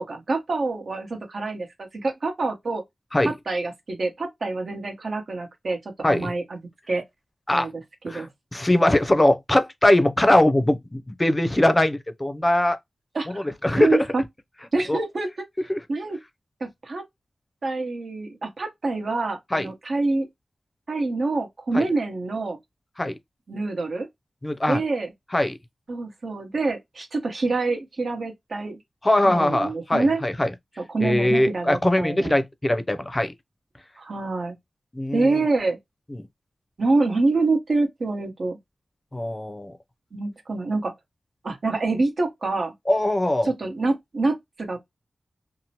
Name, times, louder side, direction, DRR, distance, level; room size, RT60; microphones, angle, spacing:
voice 1, 0.0-2.8 3.2-6.6 6.9-7.0 7.5-8.3 13.1-13.5 13.8-14.2 14.7-15.3 15.9-16.2 16.6-17.0 17.6-20.3 20.9-22.6 23.5-24.1 24.7-25.1 25.9-28.8 29.2-30.2 30.8-32.4 34.0-34.5 35.1-35.8 36.8-38.6 40.1-40.9 41.4-42.7 43.4-44.8, right 3 dB, 70° right, 0.9 m, -26 dB
voice 2, 8.5-12.8 13.3-14.0 14.9-15.0 15.7-15.8 19.5-19.7 21.7-21.9 23.0-23.2 24.4-24.8 25.3-25.6 29.0-30.5 31.0-33.3 34.9-35.4 36.1-36.3 39.1-39.7 42.9-43.5, left 1 dB, 20° left, 0.5 m, -21 dB
2.8 x 2.0 x 2.8 m
wide cardioid pair, 75°, 0 cm